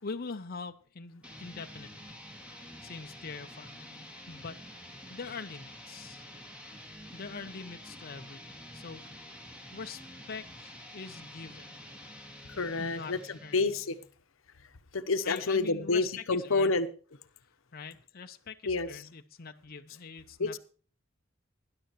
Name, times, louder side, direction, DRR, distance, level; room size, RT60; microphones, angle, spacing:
voice 1, 0.0-1.9 2.8-6.3 7.1-9.4 9.7-11.8 12.8-13.6 15.2-16.9 17.7-20.6, left 4 dB, 50° left, 0.7 m, -43 dB
sound 1, 1.2-14.1, equal, 5° right, 2.2 m, -48 dB
voice 2, 12.5-14.0 14.9-16.9 18.7-18.9 20.4-20.6, left 3 dB, 85° left, 0.9 m, -29 dB
19.5 x 10.5 x 3.1 m
head